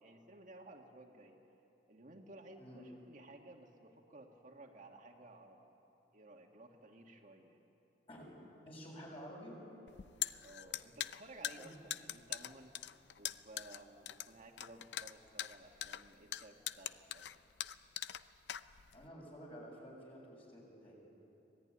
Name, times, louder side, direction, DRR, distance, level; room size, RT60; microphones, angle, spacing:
voice 1, 0.0-1.4 1.9-5.7 6.1-7.6 10.4-12.8 13.2-17.4, right 2 dB, 50° right, 1 dB, 1.7 m, -56 dB
voice 2, 8.6-9.5 11.6-11.8 18.9-21.0, equal, 35° left, -2 dB, 7.0 m, -51 dB
sound 1, 9.9-19.1, left 11 dB, 80° left, 0.6 m, -43 dB
25.5 x 17.5 x 9.9 m, 2.9 s
head